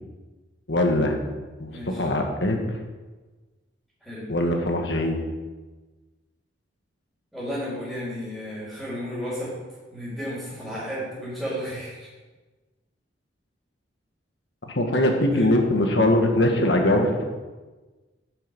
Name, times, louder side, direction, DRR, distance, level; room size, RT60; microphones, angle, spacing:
voice 1, 0.7-1.2 1.6-2.6 4.3-5.2 14.7-17.2, left 1 dB, 60° left, 3 dB, 1.7 m, -22 dB
voice 2, 1.7-2.1 4.0-4.3 7.3-9.5 9.9-12.1 15.3-15.5, equal, ahead, -12 dB, 4.2 m, -33 dB
10.5 x 7.9 x 5.3 m, 1.3 s
head